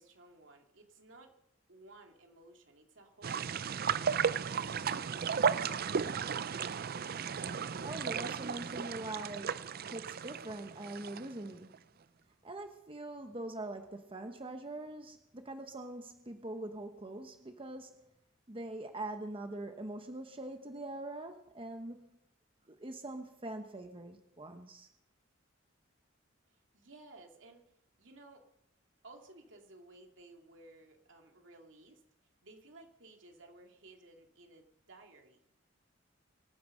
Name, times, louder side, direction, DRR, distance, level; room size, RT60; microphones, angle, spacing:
voice 1, 0.0-1.3 1.7-4.6 26.5-27.7 28.0-28.4 29.0-32.0 32.4-35.5, right 2 dB, 70° right, 3 dB, 2.6 m, -57 dB
sound 1, 3.2-11.5 11.7-11.8, right 6 dB, 50° right, 0.5 m, -34 dB
voice 2, 7.8-11.8 12.4-18.0 18.5-22.1 22.7-24.9, right 2 dB, 30° right, 6 dB, 1.1 m, -43 dB
24.0 x 9.3 x 6.5 m, 0.84 s
head